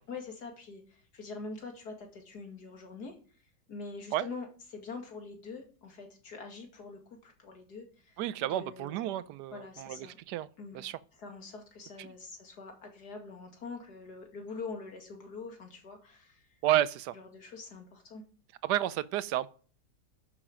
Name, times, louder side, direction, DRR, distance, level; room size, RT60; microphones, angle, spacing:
voice 1, 0.1-3.2 3.7-8.2 8.5-10.2 10.6-10.8 11.1-16.5 17.1-18.2, left 4 dB, 60° left, 2.6 m, -44 dB
voice 2, 8.2-11.0 12.0-12.1 16.6-17.2 18.6-19.5, right 13 dB, 75° right, 1.2 m, -31 dB
12.5 x 6.7 x 5.0 m
omnidirectional pair, 1.9 m